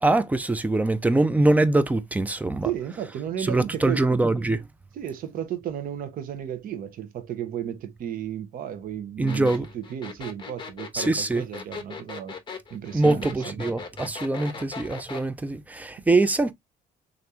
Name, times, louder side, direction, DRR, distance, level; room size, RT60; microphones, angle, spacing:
voice 1, 0.0-2.7 3.4-4.6 9.2-9.7 10.9-11.4 12.9-16.5, right 2 dB, 10° right, 0.3 m, -23 dB
voice 2, 2.6-4.6 4.9-9.5 9.7-12.4 12.7-13.6, right 10 dB, 55° right, 0.7 m, -34 dB
sound 1, 9.3-15.3, left 5 dB, 25° left, 0.7 m, -38 dB
3.3 x 2.5 x 2.6 m
cardioid pair, 110°, 17 cm